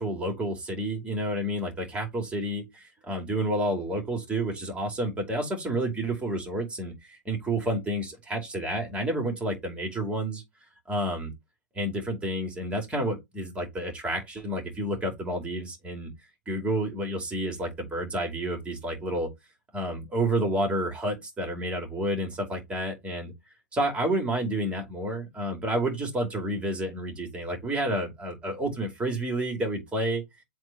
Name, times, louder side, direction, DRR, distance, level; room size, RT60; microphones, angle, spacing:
voice 1, 0.0-10.4 10.9-11.3 11.7-16.1 16.5-19.3 19.7-23.3 23.7-30.2, right 1 dB, 10° right, 2.5 m, -30 dB
7.7 x 2.7 x 4.6 m
figure-of-eight pair, 110°, 11 cm